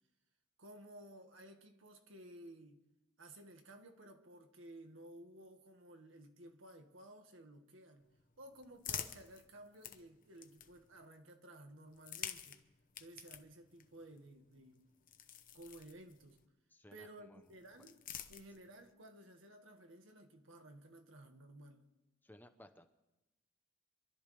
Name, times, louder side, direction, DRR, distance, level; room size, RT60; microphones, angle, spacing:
voice 1, 0.6-2.8 3.2-8.1 8.4-12.6 13.0-14.8 15.5-16.4 16.9-18.0 18.3-21.9, right 1 dB, 85° right, 1.8 m, -56 dB
sound 1, 8.0-11.0 11.9-16.5 17.4-18.9, left 9 dB, 45° left, 0.9 m, -50 dB
voice 2, 16.7-17.9 22.2-22.9, left 1 dB, 10° left, 0.8 m, -60 dB
26.0 x 12.5 x 3.4 m
head